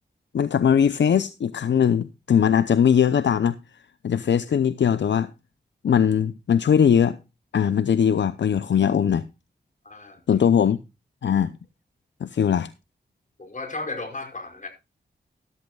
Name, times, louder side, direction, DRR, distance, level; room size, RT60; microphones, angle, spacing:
voice 1, 0.3-3.6 4.0-5.3 5.8-7.2 7.5-9.3 10.3-10.8 11.2-11.5 12.2-12.7, left 8 dB, 80° left, 0.6 m, -20 dB
voice 2, 9.8-10.4 13.4-14.7, left 3 dB, 45° left, 5.2 m, -35 dB
14.0 x 13.5 x 2.3 m
wide cardioid pair, 70°, 18 cm